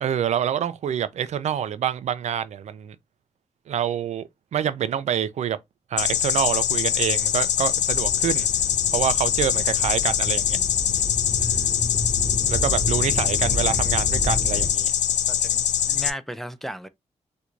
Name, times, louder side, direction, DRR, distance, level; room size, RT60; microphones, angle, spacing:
voice 1, 0.0-3.0 3.7-5.6 5.9-8.5 8.9-10.6 12.4-14.9, right 9 dB, 70° right, 0.4 m, -26 dB
sound 1, 6.0-16.1, left 10 dB, 80° left, 0.4 m, -23 dB
sound 2, 7.9-14.7, left 1 dB, 60° left, 1.8 m, -31 dB
voice 2, 11.4-12.3 15.3-16.9, equal, ahead, 0.4 m, -37 dB
4.4 x 2.6 x 2.4 m
wide cardioid pair, 105°, 12 cm